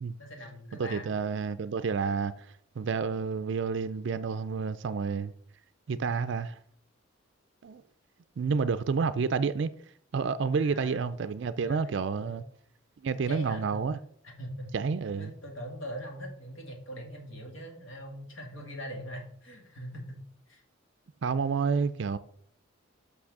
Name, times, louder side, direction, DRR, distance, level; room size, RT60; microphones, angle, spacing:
voice 1, 0.2-1.2 10.6-11.0 11.6-12.4 13.3-13.8 14.2-14.7 15.2-20.2 20.5-20.6, equal, 65° left, 2.3 m, -42 dB
voice 2, 0.8-5.3 5.9-6.6 7.6-7.8 8.4-9.7 10.1-12.4 13.0-14.0 14.7-15.3 21.2-22.2, right 5 dB, 55° right, 0.4 m, -29 dB
6.1 x 6.0 x 6.5 m
head